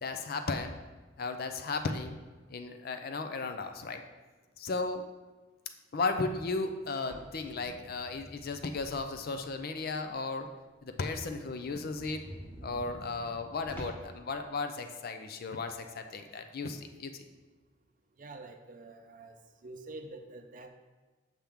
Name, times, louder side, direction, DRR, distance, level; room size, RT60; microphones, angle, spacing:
voice 1, 0.0-0.7 1.2-2.2 2.5-4.0 4.6-5.0 5.9-10.5 10.8-12.3 12.6-17.3, left 3 dB, 50° left, 7 dB, 0.5 m, -35 dB
sound 1, 6.9-9.5 9.9-10.0 10.4-10.5 10.8-10.9 11.2-11.3 11.6-14.2, equal, 10° left, 1.3 m, -49 dB
voice 2, 18.2-19.4 19.6-20.7, right 2 dB, 45° right, 6 dB, 0.6 m, -46 dB
7.4 x 5.8 x 3.5 m, 1.3 s
head